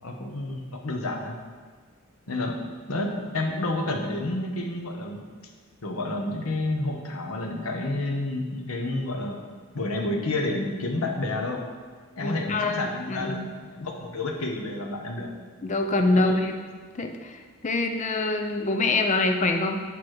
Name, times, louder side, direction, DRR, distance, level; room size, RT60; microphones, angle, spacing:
voice 1, 0.0-1.4 2.3-2.6 2.9-5.2 5.8-9.4 9.7-11.6 12.2-13.4 13.7-15.3 16.1-16.4, left 2 dB, 85° left, 1 dB, 1.0 m, -30 dB
voice 2, 12.2-13.5 15.6-16.5 16.9-19.8, left 2 dB, 35° left, 4 dB, 0.6 m, -25 dB
8.3 x 3.0 x 6.3 m, 1.6 s
head